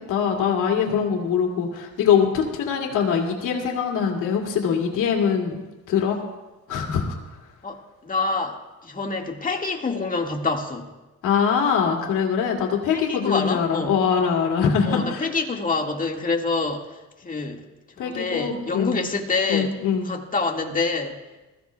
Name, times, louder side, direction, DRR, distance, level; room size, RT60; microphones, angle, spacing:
voice 1, 0.1-5.6 5.9-6.2 6.7-7.2 11.2-15.3 18.0-19.0 19.5-20.1, left 7 dB, 90° left, 0 dB, 2.5 m, -23 dB
voice 2, 7.6-10.9 12.9-13.9 14.8-17.0 17.2-17.6 18.0-19.7 20.0-21.2, left 3 dB, 25° left, 1 dB, 1.9 m, -27 dB
20.5 x 15.5 x 2.3 m, 1.1 s
cardioid pair, 90°, 30 cm